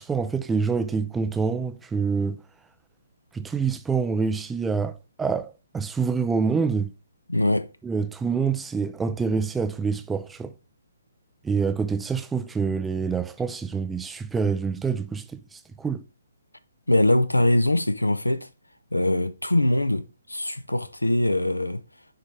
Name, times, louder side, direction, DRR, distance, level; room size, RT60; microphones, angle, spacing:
voice 1, 0.0-2.4 3.3-6.9 7.8-10.5 11.4-16.0, right 5 dB, 5° right, 0.3 m, -26 dB
voice 2, 7.3-7.7 16.9-18.5 18.9-21.8, left 1 dB, 85° left, 0.6 m, -22 dB
6.7 x 4.5 x 3.3 m
figure-of-eight pair, 135°, 0 cm